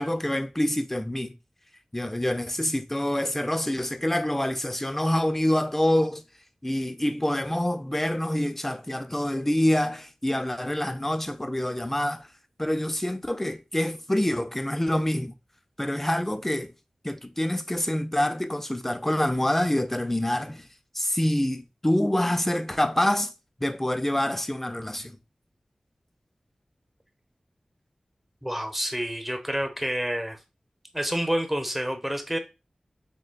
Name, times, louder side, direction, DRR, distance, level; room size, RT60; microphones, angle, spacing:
voice 1, 0.0-1.4 1.9-6.2 6.6-12.3 12.6-15.3 15.8-16.7 17.0-20.7 20.9-23.3 23.6-25.2, left 1 dB, 15° left, 0.4 m, -26 dB
voice 2, 28.4-30.4 30.9-32.4, equal, 5° right, 0.8 m, -28 dB
6.3 x 2.2 x 2.2 m
wide cardioid pair, 75°, 2 cm